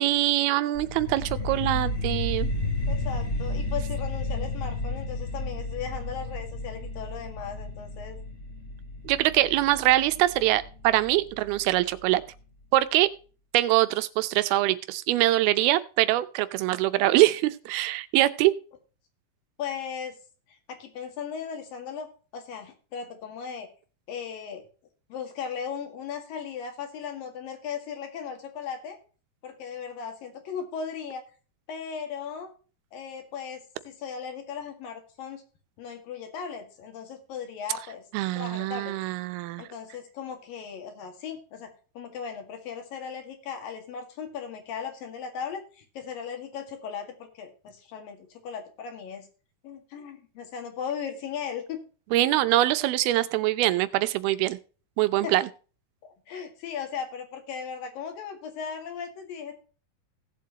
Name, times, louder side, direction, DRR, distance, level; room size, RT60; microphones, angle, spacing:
voice 1, 0.0-2.5 9.1-12.2 12.7-13.1 13.5-18.5 38.1-39.7 52.1-54.6 55.0-55.5, right 16 dB, 90° right, 13 dB, 2.7 m, -23 dB
sound 1, 0.7-11.8, left 2 dB, 25° left, 2.4 m, -32 dB
voice 2, 2.9-8.2 19.6-20.2 20.5-22.1 22.3-23.7 24.1-24.6 25.1-29.0 29.4-31.2 31.7-32.5 32.9-35.4 35.8-38.0 38.4-39.0 39.6-41.7 42.0-49.3 49.6-51.8 55.2-55.4 56.0-59.6, left 7 dB, 70° left, 5 dB, 3.6 m, -37 dB
17.0 x 7.6 x 2.9 m, 0.36 s
omnidirectional pair, 4.3 m